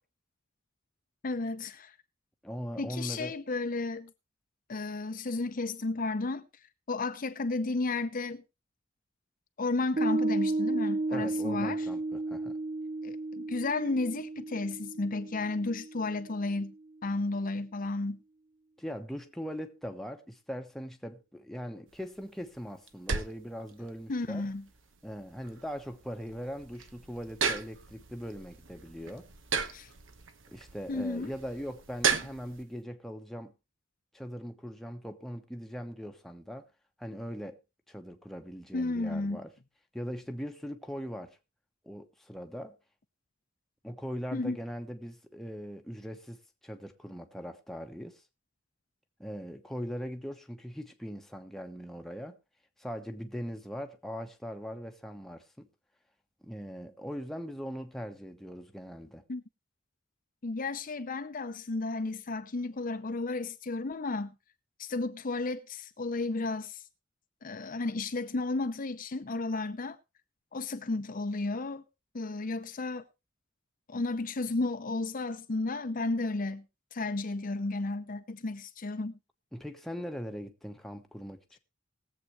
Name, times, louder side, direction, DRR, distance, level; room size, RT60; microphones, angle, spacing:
voice 1, 1.2-1.9 2.8-4.1 4.7-6.5 6.9-8.4 9.6-11.9 13.0-16.7 17.0-18.2 24.1-24.6 29.7-29.9 30.9-31.3 38.7-39.4 44.3-44.6 59.3-59.4 60.4-64.3 64.8-66.8 67.4-70.0 70.5-71.8 72.1-73.0 73.9-76.6 76.9-79.1, left 3 dB, 45° left, 0.7 m, -33 dB
voice 2, 2.4-3.4 11.1-12.6 18.8-24.4 25.0-29.3 30.5-33.5 34.1-36.7 37.0-37.6 37.9-39.5 39.9-41.4 41.8-42.8 43.8-48.2 49.2-52.4 52.8-55.7 56.4-59.2 79.5-81.6, equal, ahead, 1.0 m, -40 dB
Piano, 10.0-16.7, right 2 dB, 40° right, 0.5 m, -33 dB
sound 1, 21.9-32.6, right 6 dB, 75° right, 1.0 m, -36 dB
20.5 x 7.6 x 3.1 m
head